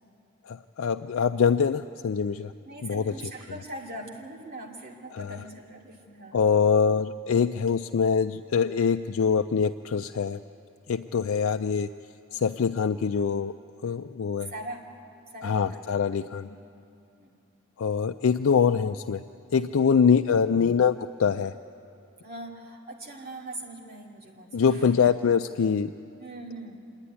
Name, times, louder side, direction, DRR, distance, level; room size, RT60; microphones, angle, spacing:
voice 1, 0.5-2.5 2.8-3.1 5.1-5.4 6.3-10.4 10.9-11.9 12.3-13.5 13.8-14.5 15.4-16.5 17.8-19.2 19.5-21.5 24.5-25.9, left 6 dB, 65° left, 8 dB, 0.4 m, -24 dB
voice 2, 2.6-6.4 14.5-14.8 15.3-15.8 16.4-16.6 17.2-17.4 22.2-24.9 26.2-26.9, right 1 dB, 45° right, -1 dB, 2.5 m, -41 dB
26.5 x 10.5 x 9.8 m, 2.6 s
head